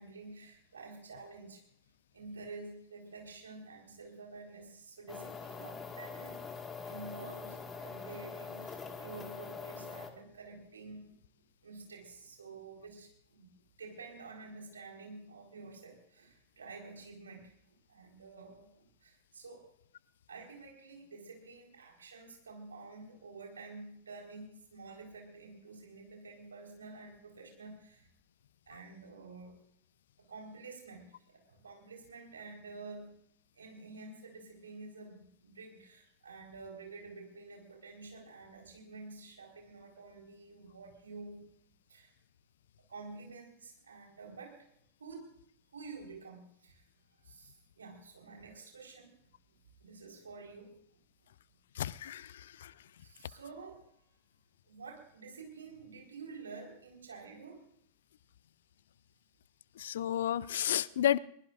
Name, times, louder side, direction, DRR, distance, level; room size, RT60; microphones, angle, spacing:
voice 1, 0.0-1.6 2.1-6.4 6.8-11.1 11.6-13.5 13.8-17.5 17.9-19.7 20.3-28.1 28.7-29.6 30.2-33.2 33.5-41.5 41.9-42.1 42.8-44.7 45.0-45.3 45.7-46.9 47.2-49.1 49.5-51.0 53.0-53.8 54.7-57.6, right 3 dB, 70° right, 4.4 m, -49 dB
sound 1, 5.1-10.1, left 5 dB, 20° left, 1.8 m, -44 dB
voice 2, 51.8-52.3 52.6-52.7 59.8-61.2, left 11 dB, 60° left, 0.5 m, -31 dB
22.0 x 20.5 x 2.6 m
figure-of-eight pair, 90°, 0 cm